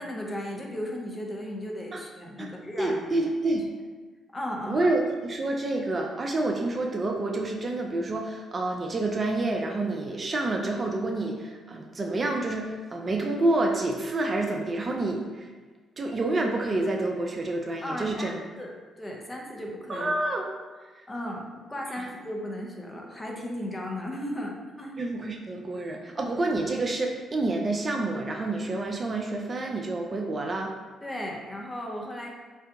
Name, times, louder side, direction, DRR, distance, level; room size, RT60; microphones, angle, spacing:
voice 1, 0.0-3.2 3.5-3.6 4.3-4.9 17.8-18.7 19.0-20.1 21.1-25.0 31.0-32.3, left 1 dB, 20° left, -1 dB, 0.6 m, -35 dB
voice 2, 2.8-3.7 4.7-15.5 16.0-18.3 19.9-20.5 22.0-22.1 25.0-30.7, right 2 dB, 35° right, 1 dB, 0.3 m, -28 dB
2.6 x 2.2 x 3.5 m, 1.3 s
figure-of-eight pair, 45°, 0 cm